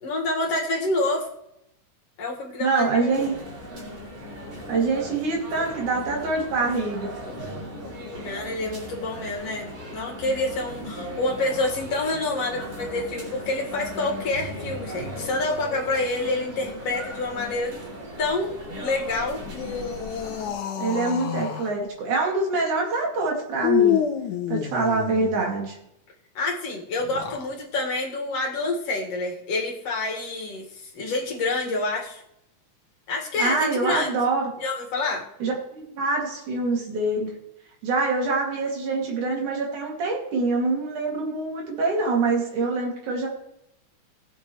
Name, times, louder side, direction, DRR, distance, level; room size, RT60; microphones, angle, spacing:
voice 1, 0.0-1.3 2.2-3.2 8.2-17.7 18.2-19.4 26.3-32.2 33.1-34.1 34.6-35.2, left 2 dB, 55° left, -1 dB, 2.8 m, -27 dB
voice 2, 2.6-3.4 4.7-7.1 20.8-24.1 24.5-25.8 33.4-34.5 35.4-37.3 37.8-43.3, right 3 dB, 85° right, -1 dB, 3.9 m, -25 dB
sound 1, 3.1-20.5, equal, 45° right, 3.6 m, -37 dB
sound 2, 19.4-21.7 23.6-25.4 27.0-27.5, left 10 dB, 90° left, 2.6 m, -27 dB
20.0 x 7.1 x 3.1 m, 0.81 s
omnidirectional pair, 3.4 m